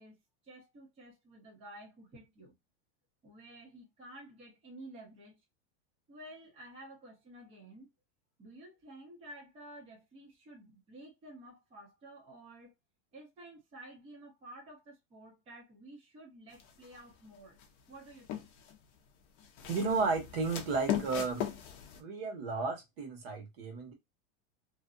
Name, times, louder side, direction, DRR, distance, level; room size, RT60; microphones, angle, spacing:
voice 1, 0.0-2.5 3.2-5.4 6.1-7.9 8.4-12.7 13.1-17.6 17.9-18.5, right 1 dB, 15° right, 0.9 m, -52 dB
sound 1, 16.5-17.0 17.6-18.8 19.4-22.0, left 10 dB, 40° left, 0.6 m, -38 dB
voice 2, 19.7-21.5 22.0-23.9, right 4 dB, 55° right, 1.2 m, -33 dB
2.6 x 2.3 x 2.4 m
supercardioid pair, 165°, 35 cm